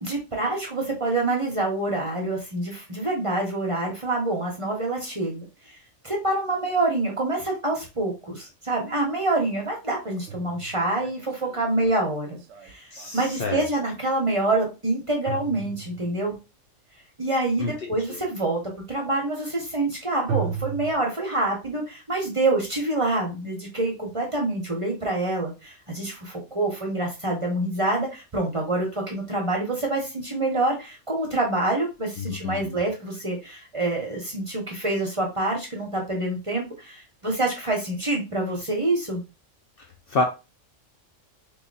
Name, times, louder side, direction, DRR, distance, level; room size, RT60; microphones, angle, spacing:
voice 1, 0.0-5.8 6.0-16.3 17.2-18.6 18.9-39.2, right 2 dB, 30° right, 0 dB, 0.7 m, -26 dB
sound 1, 8.9-9.0 9.9-13.5 15.2-16.4 20.3-20.9, right 7 dB, 75° right, 0.9 m, -34 dB
voice 2, 12.9-13.6 17.6-18.2 32.2-32.8 39.8-40.2, left 3 dB, 60° left, 3 dB, 0.7 m, -29 dB
3.2 x 2.3 x 3.9 m, 0.29 s
omnidirectional pair, 1.3 m